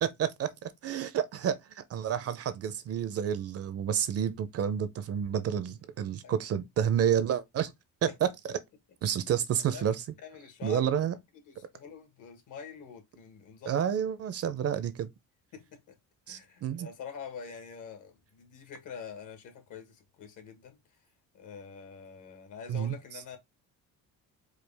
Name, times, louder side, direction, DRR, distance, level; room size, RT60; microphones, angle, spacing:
voice 1, 0.0-7.7 8.0-8.5 9.0-10.0 10.6-11.1 13.7-15.1 16.3-16.9 22.7-23.0, right 9 dB, 45° right, 0.5 m, -30 dB
voice 2, 10.2-11.1 11.4-13.8 15.5-15.9 16.3-20.8 21.3-23.4, left 6 dB, 60° left, 1.5 m, -46 dB
4.8 x 2.4 x 3.3 m
cardioid pair, 145°, 35 cm